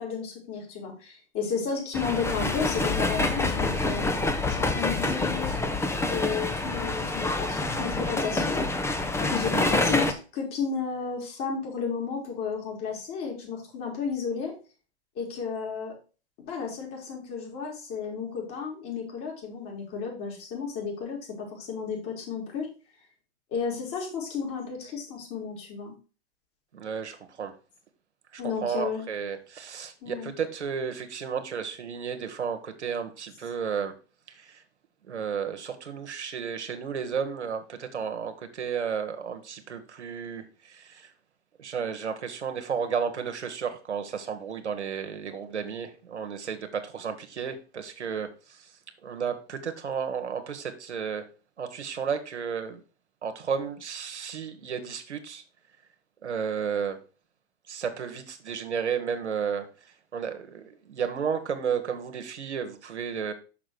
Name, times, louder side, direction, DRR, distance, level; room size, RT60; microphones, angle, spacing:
voice 1, 0.0-4.1 4.5-5.6 6.0-8.6 9.2-14.5 15.2-15.9 16.4-22.7 23.5-25.9 28.4-29.1 30.0-30.3, left 6 dB, 40° left, -1 dB, 3.8 m, -32 dB
sound 1, 1.9-10.1, left 2 dB, 10° left, 0.9 m, -27 dB
voice 2, 26.7-27.5 28.3-33.9 34.3-34.6 35.0-41.1 41.6-48.7 49.0-51.3 51.6-52.8 53.2-55.4 56.2-57.0 57.7-59.7 60.1-63.3, right 6 dB, 90° right, 7 dB, 1.3 m, -33 dB
6.2 x 5.9 x 4.5 m, 0.34 s
hypercardioid pair, 100°, 33 cm